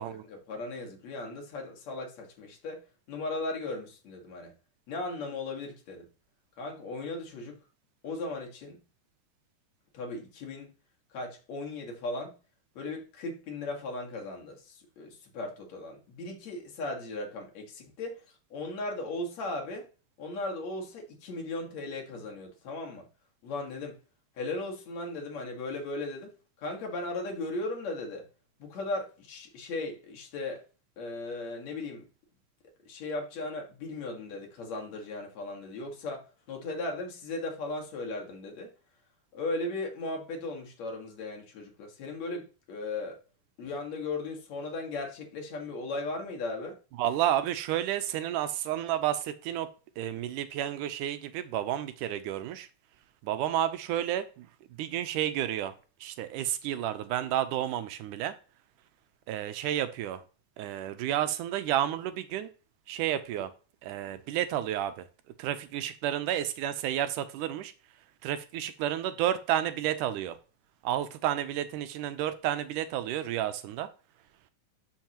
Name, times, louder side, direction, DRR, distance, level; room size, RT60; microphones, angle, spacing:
voice 1, 0.3-2.8 3.1-4.5 4.9-6.1 6.6-7.6 8.0-8.8 9.9-10.7 11.1-12.4 12.8-18.2 18.5-19.9 20.2-23.1 23.4-24.0 24.4-26.3 26.6-28.3 28.6-30.6 31.0-32.1 32.9-38.7 39.3-43.2 43.6-46.8, left 2 dB, 60° left, 2.9 m, -37 dB
voice 2, 47.0-49.7 50.0-52.7 53.2-54.5 54.8-55.7 56.0-58.3 59.3-60.2 60.6-62.5 62.9-63.5 63.8-65.1 65.4-67.7 68.2-70.4 70.8-73.9, right 11 dB, 85° right, 2.3 m, -31 dB
12.0 x 5.7 x 3.0 m
omnidirectional pair, 3.6 m